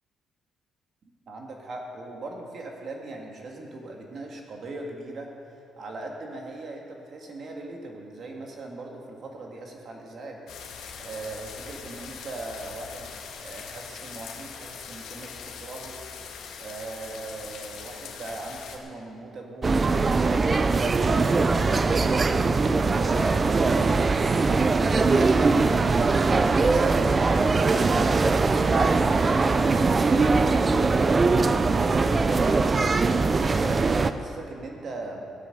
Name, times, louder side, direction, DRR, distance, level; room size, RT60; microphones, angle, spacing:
voice 1, 1.3-10.4 11.0-13.1 13.4-16.0 16.6-19.7 20.1-27.9 28.4-32.8 33.3-35.3, right 2 dB, 40° right, 1 dB, 1.8 m, -39 dB
sound 1, 10.5-18.8, left 6 dB, 85° left, 1.6 m, -41 dB
sound 2, 19.6-34.1, right 3 dB, 20° right, 0.4 m, -21 dB
15.0 x 8.6 x 6.6 m, 2.5 s
cardioid pair, 175°, 0 cm